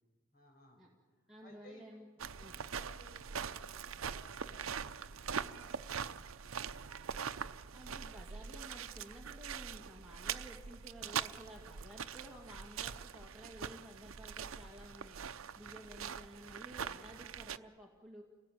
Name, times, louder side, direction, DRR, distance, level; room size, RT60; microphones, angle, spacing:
voice 1, 0.3-0.8 1.4-1.8 2.2-7.2, equal, 45° left, 1 dB, 6.8 m, -62 dB
voice 2, 1.3-2.1 2.4-2.6 7.7-15.2 15.6-18.2, equal, ahead, -4 dB, 2.0 m, -53 dB
sound 1, 2.2-17.6, right 7 dB, 90° right, 0.7 m, -43 dB
28.5 x 18.0 x 9.2 m, 1.5 s
head